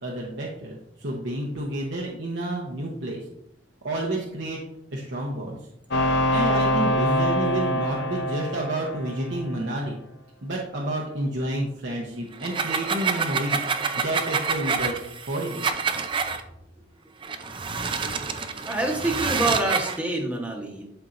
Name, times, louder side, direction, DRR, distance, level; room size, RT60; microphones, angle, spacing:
voice 1, 0.0-3.2 3.8-4.6 4.9-5.6 6.3-10.0 10.4-15.0 15.3-15.7, right 1 dB, 65° right, -2 dB, 1.0 m, -30 dB
sound 1, 5.9-9.6, equal, 60° left, 0.8 m, -24 dB
sound 2, 12.3-16.4 17.2-20.0, right 5 dB, 25° right, 0.5 m, -27 dB
voice 2, 18.6-20.8, right 2 dB, 5° right, 0 dB, 1.2 m, -26 dB
11.5 x 4.4 x 2.6 m, 0.78 s
head